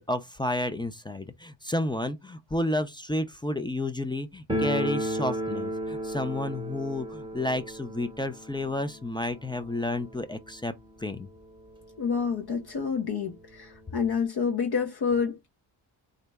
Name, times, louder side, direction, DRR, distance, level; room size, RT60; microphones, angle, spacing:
voice 1, 0.0-10.7 11.0-11.3, left 1 dB, 10° left, 0.4 m, -31 dB
sound 1, 4.5-11.2 11.5-11.6 11.8-11.9 12.7-12.8 13.1-14.2, equal, 10° right, 0.9 m, -34 dB
voice 2, 12.0-15.5, left 6 dB, 55° left, 0.9 m, -28 dB
3.9 x 2.1 x 3.4 m
cardioid pair, 65°, 46 cm